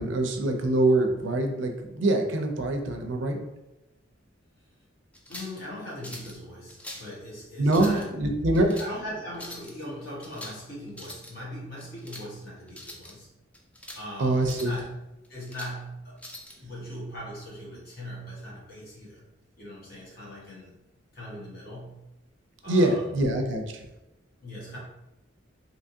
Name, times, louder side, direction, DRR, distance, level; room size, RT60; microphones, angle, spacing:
voice 1, 0.0-3.4 7.6-8.8 14.2-14.7 22.7-23.6, right 1 dB, 65° right, 4 dB, 0.5 m, -24 dB
sound 1, 5.1-5.6 6.0-6.4 6.7-7.1 7.6-8.1 8.5-8.9 9.3-9.7 10.2-10.6 10.9-11.3 11.8-12.3 12.7-13.1 13.5-14.0 14.4-14.8 15.2-15.7 16.2-16.6, left 1 dB, 5° left, 0.4 m, -43 dB
voice 2, 5.3-8.2 8.8-13.3 13.9-14.9 15.3-16.2 16.6-19.3 19.6-20.7 21.1-22.1 22.6-23.2 24.4-24.8, equal, 50° left, -6 dB, 1.4 m, -40 dB
3.4 x 2.8 x 2.7 m, 0.94 s
head